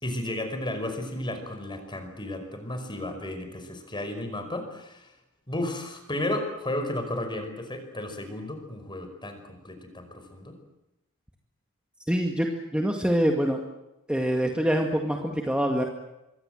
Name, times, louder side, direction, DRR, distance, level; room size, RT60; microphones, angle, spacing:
voice 1, 0.0-5.1 5.5-10.6, left 1 dB, 20° left, 7 dB, 5.2 m, -33 dB
voice 2, 12.1-13.6 14.1-15.8, equal, 5° right, 2 dB, 2.1 m, -25 dB
26.0 x 23.5 x 7.8 m, 0.91 s
head